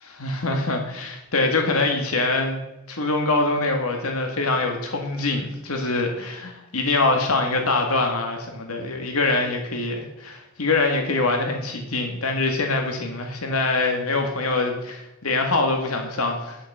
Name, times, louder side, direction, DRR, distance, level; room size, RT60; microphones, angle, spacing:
voice 1, 0.1-16.6, left 3 dB, 85° left, 3 dB, 2.0 m, -24 dB
9.9 x 8.1 x 6.7 m, 0.94 s
head